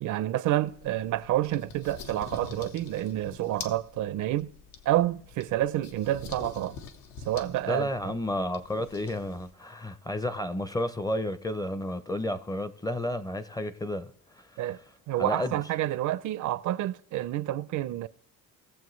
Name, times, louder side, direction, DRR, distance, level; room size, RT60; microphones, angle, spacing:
voice 1, 0.0-4.5 4.9-6.8 7.3-8.1 14.6-14.8 15.1-18.1, right 14 dB, 60° right, 0.5 m, -29 dB
sound 1, 0.7-9.5, left 5 dB, 85° left, 1.2 m, -46 dB
voice 2, 7.7-14.6 15.2-15.6, left 1 dB, 10° left, 0.5 m, -32 dB
19.5 x 7.3 x 3.1 m
cardioid pair, 150°, 33 cm